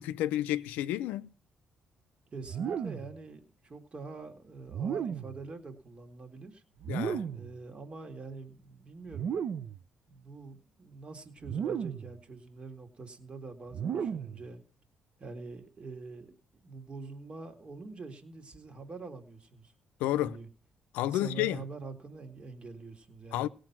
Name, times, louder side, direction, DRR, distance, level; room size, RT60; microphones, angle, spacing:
voice 1, 0.0-1.3 6.9-7.2 20.0-20.4 20.9-21.6 23.3-23.5, left 13 dB, 90° left, 0.5 m, -31 dB
voice 2, 2.3-6.6 7.3-9.4 10.1-14.6 15.2-16.4 16.6-19.7 20.2-20.5 21.0-23.5, right 3 dB, 40° right, 2.2 m, -45 dB
sound 1, 2.5-3.2 4.7-5.4 6.8-7.5 9.1-9.8 11.4-12.2 13.7-14.4, right 7 dB, 65° right, 0.6 m, -34 dB
17.5 x 6.5 x 6.0 m
supercardioid pair, 65°, 3 cm